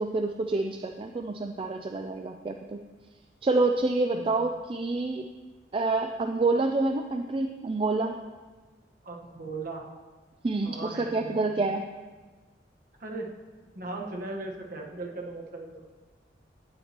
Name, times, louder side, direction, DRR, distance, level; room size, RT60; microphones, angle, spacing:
voice 1, 0.0-2.8 3.4-5.2 5.7-8.1 10.4-11.8, right 3 dB, 30° right, 5 dB, 0.3 m, -27 dB
voice 2, 9.0-9.8 10.6-11.5 13.0-13.3 13.7-15.8, right 2 dB, 50° right, 0 dB, 1.3 m, -38 dB
17.0 x 7.3 x 3.0 m, 1.4 s
head